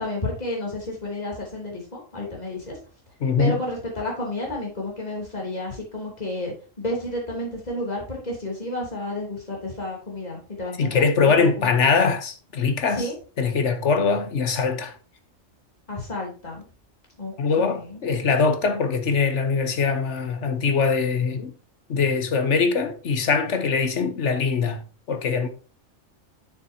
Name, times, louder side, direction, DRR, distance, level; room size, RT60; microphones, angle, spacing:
voice 1, 0.0-2.8 3.4-11.7 12.9-13.1 15.9-16.6 17.2-18.0, left 1 dB, 30° left, 3.4 m, -31 dB
voice 2, 3.2-3.6 10.8-13.1 13.4-14.9 17.4-21.5 21.9-24.8 25.1-25.5, left 5 dB, 65° left, 1.4 m, -22 dB
9.3 x 6.8 x 2.8 m
omnidirectional pair, 1.3 m